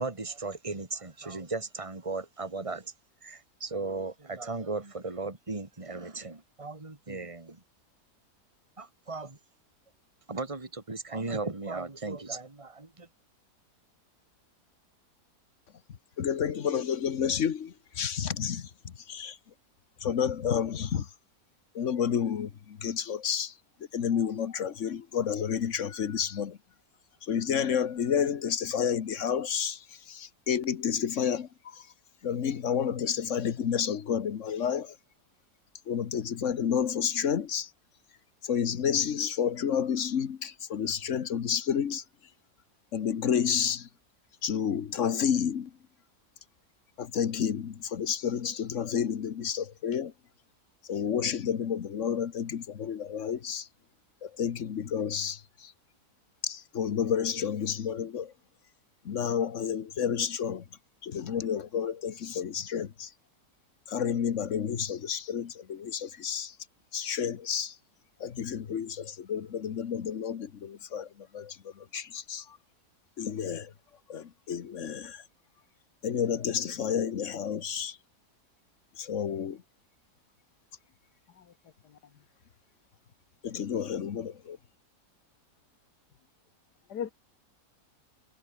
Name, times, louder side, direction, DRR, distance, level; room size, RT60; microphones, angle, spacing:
voice 1, 0.0-2.9 3.2-7.6 8.8-9.4 10.3-13.1, right 3 dB, 20° right, 2.5 m, -36 dB
voice 2, 16.2-19.4 20.0-21.1 21.7-23.5 23.9-26.6 27.2-31.9 32.2-34.9 35.9-37.7 38.4-42.0 42.9-43.9 44.4-45.7 47.0-50.1 50.9-53.7 54.2-55.7 56.4-58.3 59.0-60.6 61.0-63.1 63.9-66.5 66.9-67.8 68.2-72.6 73.2-73.7 74.1-75.2 76.0-78.0 79.0-79.6 83.4-84.6, left 8 dB, 50° left, 1.4 m, -30 dB
voice 3, 81.3-82.2 86.9-87.1, left 8 dB, 90° left, 1.9 m, -40 dB
omnidirectional pair, 1.7 m